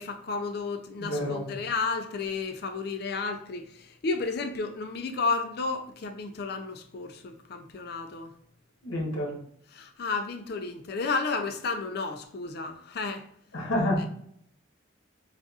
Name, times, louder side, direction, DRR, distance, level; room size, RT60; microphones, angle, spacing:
voice 1, 0.0-8.3 9.7-13.2, left 4 dB, 50° left, 0.4 m, -32 dB
voice 2, 1.0-1.4 8.8-9.4 13.5-14.1, left 1 dB, 75° left, 0.9 m, -28 dB
4.0 x 2.4 x 2.3 m
head